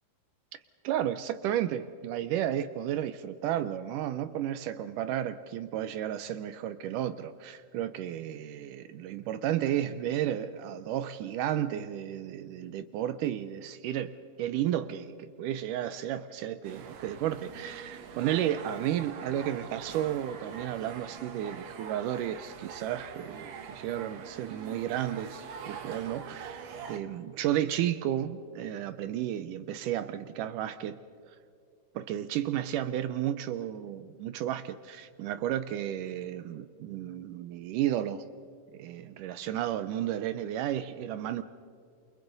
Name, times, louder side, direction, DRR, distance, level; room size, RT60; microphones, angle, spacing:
voice 1, 0.8-31.0 32.0-38.3 38.7-41.4, right 11 dB, 80° right, 2.0 m, -33 dB
sound 1, 16.6-27.0, right 6 dB, 60° right, 2.2 m, -44 dB
28.5 x 28.5 x 4.0 m
omnidirectional pair, 4.1 m